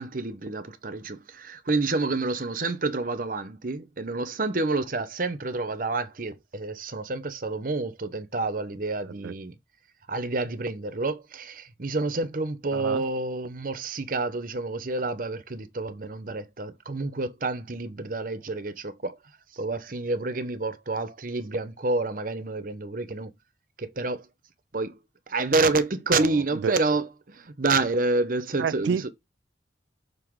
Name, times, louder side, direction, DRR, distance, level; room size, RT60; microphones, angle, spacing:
voice 1, 0.0-9.5 10.1-19.2 19.5-23.3 23.8-24.3 24.7-25.0 25.3-29.1, right 3 dB, 45° right, 0.8 m, -28 dB
voice 2, 12.7-13.0 26.2-26.8 28.6-29.1, right 6 dB, 70° right, 0.3 m, -30 dB
6.7 x 3.7 x 4.7 m
head